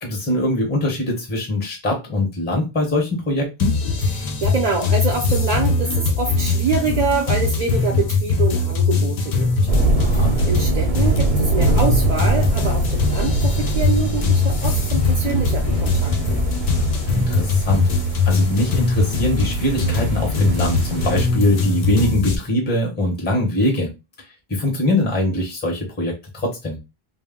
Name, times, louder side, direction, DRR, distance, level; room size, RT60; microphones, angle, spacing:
voice 1, 0.0-3.8 10.0-10.4 17.1-17.9 18.2-23.9 24.5-26.8, left 1 dB, 10° left, 0.7 m, -22 dB
sound 1, 3.6-22.4, left 3 dB, 55° left, 0.5 m, -21 dB
voice 2, 4.1-9.5 10.1-16.4, right 4 dB, 50° right, 0.5 m, -25 dB
sound 2, 9.7-21.2, right 3 dB, 85° right, 0.8 m, -23 dB
2.1 x 2.0 x 3.5 m
omnidirectional pair, 1.0 m